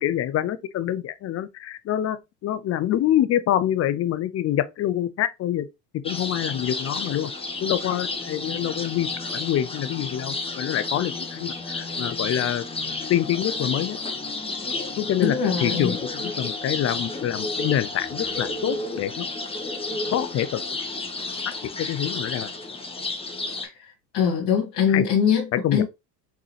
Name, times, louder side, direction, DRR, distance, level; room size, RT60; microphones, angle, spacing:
voice 1, 0.0-5.7 5.9-7.3 7.6-12.6 13.1-14.0 15.0-19.3 20.1-20.6 21.8-22.5 24.9-25.1 25.6-25.8, left 11 dB, 30° left, 0.5 m, -26 dB
sound 1, 6.0-23.6, left 3 dB, 10° left, 1.0 m, -31 dB
voice 2, 15.2-15.9 24.1-25.8, left 7 dB, 55° left, 2.0 m, -22 dB
4.1 x 3.7 x 3.2 m
hypercardioid pair, 85°, 49 cm